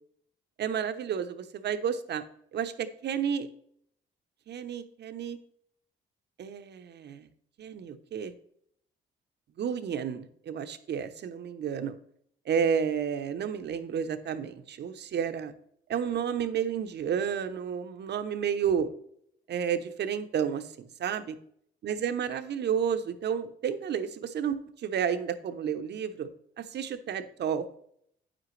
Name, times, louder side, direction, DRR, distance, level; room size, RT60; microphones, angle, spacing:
voice 1, 0.6-2.2 2.5-3.5 4.5-5.4 6.4-7.3 7.6-8.3 9.6-12.0 12.5-15.5 15.9-18.9 19.5-21.4 21.8-26.3 26.6-27.8, right 7 dB, 60° right, 10 dB, 0.8 m, -31 dB
8.9 x 7.7 x 3.2 m, 0.67 s
cardioid pair, 90°, 20 cm